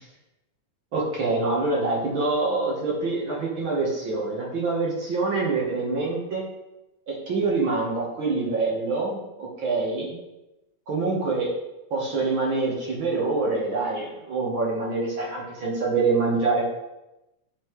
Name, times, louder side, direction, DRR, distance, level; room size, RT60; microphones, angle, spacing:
voice 1, 0.9-6.4 7.1-10.2 10.9-11.5 11.9-16.7, right 3 dB, 55° right, -4 dB, 1.4 m, -25 dB
9.5 x 5.6 x 3.1 m, 0.95 s
omnidirectional pair, 4.1 m